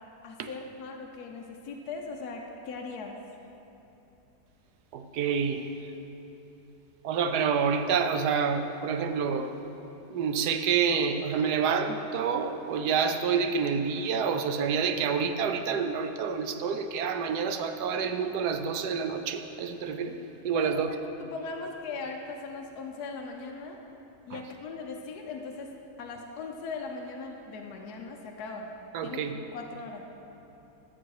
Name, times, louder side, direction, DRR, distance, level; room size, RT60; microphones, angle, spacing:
voice 1, 0.2-3.2 20.5-20.8 21.2-23.8 24.3-25.7 26.0-28.7 29.0-30.0, left 4 dB, 65° left, 1 dB, 1.2 m, -39 dB
voice 2, 4.9-5.7 7.0-9.5 10.1-20.2 20.4-20.9 24.3-24.4 28.9-29.3, right 6 dB, 70° right, 7 dB, 1.2 m, -28 dB
13.5 x 7.7 x 4.7 m, 2.9 s
omnidirectional pair, 1.9 m